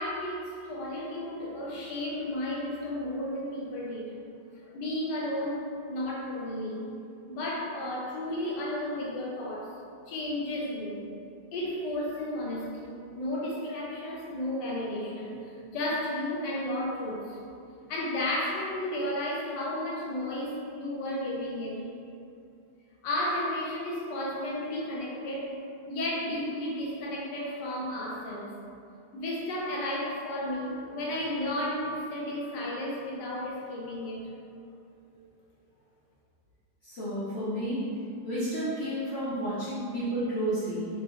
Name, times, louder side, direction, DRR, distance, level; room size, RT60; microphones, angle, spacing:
voice 1, 0.0-4.2 4.7-6.8 7.3-9.7 10.1-11.1 11.5-17.4 17.9-21.9 23.0-25.5 25.9-28.5 29.1-34.3 35.1-35.2, left 1 dB, 75° left, -4 dB, 1.3 m, -33 dB
voice 2, 36.8-37.9 38.2-40.9, right 1 dB, 55° left, -11 dB, 0.7 m, -31 dB
4.6 x 2.5 x 2.8 m, 2.5 s
omnidirectional pair, 1.9 m